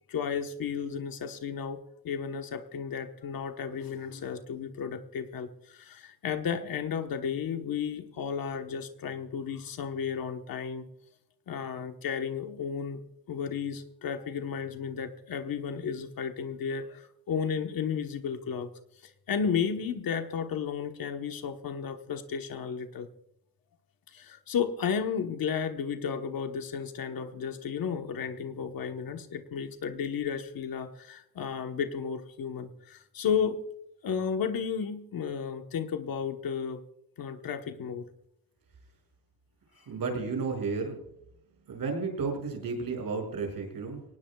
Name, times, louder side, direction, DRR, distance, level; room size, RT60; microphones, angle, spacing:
voice 1, 0.1-1.8 2.0-10.9 11.5-13.0 13.3-18.7 19.0-23.1 24.1-33.6 34.0-36.8 37.2-38.1, left 7 dB, 70° left, 6 dB, 1.3 m, -33 dB
voice 2, 39.9-41.0 41.7-44.0, right 4 dB, 70° right, 2 dB, 6.1 m, -32 dB
24.5 x 18.5 x 2.4 m, 0.77 s
wide cardioid pair, 165°, 36 cm